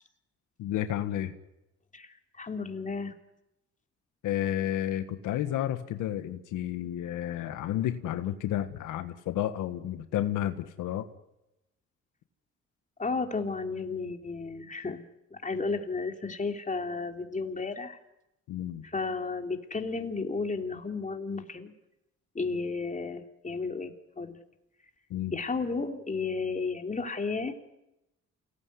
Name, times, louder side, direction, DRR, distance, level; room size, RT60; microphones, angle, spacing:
voice 1, 0.6-1.3 4.2-11.1 18.5-18.8 25.1-25.3, left 12 dB, 90° left, 9 dB, 1.7 m, -31 dB
voice 2, 2.4-3.1 13.0-15.0 15.3-18.0 18.8-21.7 22.3-24.4 25.3-27.7, left 4 dB, 25° left, 5 dB, 3.4 m, -33 dB
28.5 x 18.5 x 9.6 m, 0.91 s
cardioid pair, 90°, 30 cm